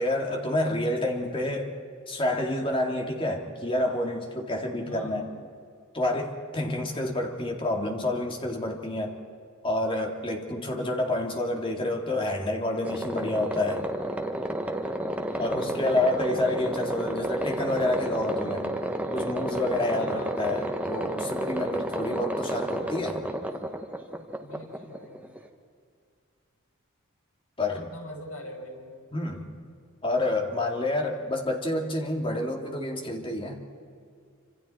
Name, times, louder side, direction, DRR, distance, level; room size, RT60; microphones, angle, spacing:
voice 1, 0.0-1.7 2.1-5.2 5.9-9.2 9.6-13.8 15.4-18.7 19.1-23.2 27.6-27.9 29.1-29.5 30.0-33.6, left 1 dB, 25° left, 2 dB, 2.3 m, -28 dB
voice 2, 4.8-5.3 15.4-15.8 19.9-20.6 24.4-25.2 27.9-29.0, left 1 dB, 65° left, -1 dB, 5.9 m, -42 dB
sound 1, 12.8-25.5, right 1 dB, 5° right, 1.2 m, -31 dB
27.0 x 26.5 x 4.4 m, 2.3 s
head